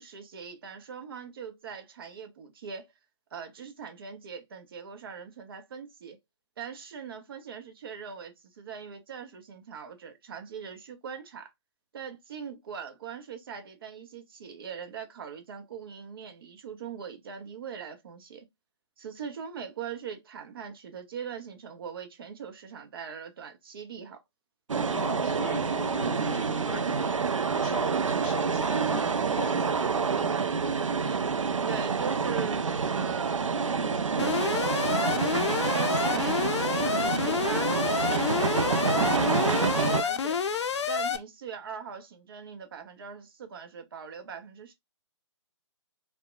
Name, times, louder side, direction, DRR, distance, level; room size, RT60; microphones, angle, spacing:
voice 1, 0.0-2.9 3.3-6.2 6.6-11.5 11.9-18.5 19.0-24.2 31.0-31.2 31.7-33.7 34.2-40.4 40.8-44.7, right 7 dB, 50° right, 0.6 m, -41 dB
sound 1, 24.7-40.0, right 5 dB, 90° right, 0.4 m, -27 dB
voice 2, 24.9-27.2 27.5-29.9, left 3 dB, 15° left, 0.5 m, -41 dB
Alarm, 34.2-41.2, left 6 dB, 60° left, 0.4 m, -29 dB
2.7 x 2.1 x 2.2 m
figure-of-eight pair, 140°, 16 cm